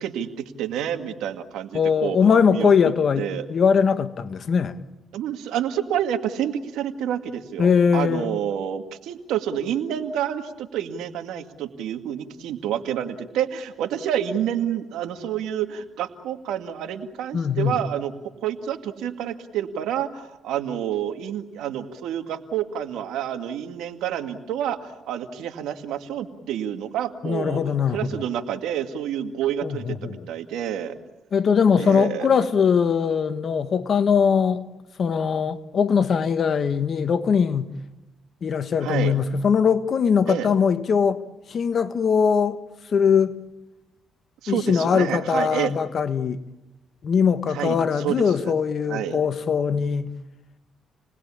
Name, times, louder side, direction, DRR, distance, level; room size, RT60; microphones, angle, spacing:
voice 1, 0.0-2.7 3.2-3.5 5.1-18.1 18.4-31.0 31.8-32.3 38.8-39.2 40.3-40.5 44.4-45.8 47.5-48.5 48.9-49.2, right 10 dB, 90° right, 2.1 m, -28 dB
voice 2, 1.7-4.8 7.6-8.4 17.3-17.8 27.2-28.1 29.6-30.3 31.3-34.6 35.0-37.7 38.4-41.2 41.5-42.6 42.9-43.4 44.5-46.4 47.0-50.1, left 6 dB, 55° left, 1.5 m, -21 dB
29.0 x 20.5 x 8.6 m
cardioid pair, 90°, 0 cm